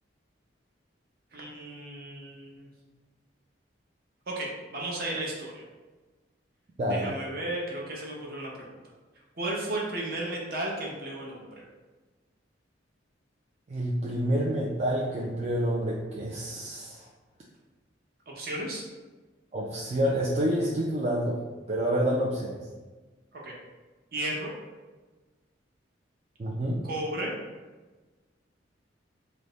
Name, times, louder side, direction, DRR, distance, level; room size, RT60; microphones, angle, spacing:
voice 1, 1.3-2.7 4.3-5.6 6.9-8.8 9.4-11.6 18.3-18.8 23.3-23.5 24.1-24.5 26.8-27.3, right 1 dB, 55° right, -2 dB, 0.7 m, -34 dB
voice 2, 6.8-7.1 13.7-17.0 19.5-21.4 21.7-22.6 26.4-26.8, equal, 35° right, -4 dB, 0.4 m, -28 dB
3.3 x 2.0 x 3.8 m, 1.3 s
head